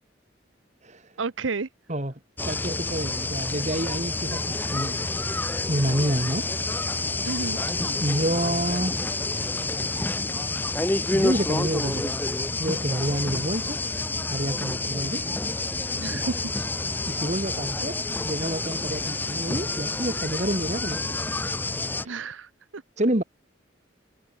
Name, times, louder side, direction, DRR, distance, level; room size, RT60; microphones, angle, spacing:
voice 1, 1.2-1.7 7.2-7.6 16.0-16.4 22.0-22.8, right 4 dB, 90° right, 0.9 m, -31 dB
sound 1, 2.4-22.1, left 2 dB, 10° left, 0.4 m, -28 dB
voice 2, 2.4-5.1 5.7-6.5 8.0-8.9 11.1-12.2 12.6-13.8 14.3-15.2 16.1-16.3 17.1-18.0 18.2-21.3 21.8-22.2 23.0-23.2, right 1 dB, 35° right, 2.4 m, -28 dB
head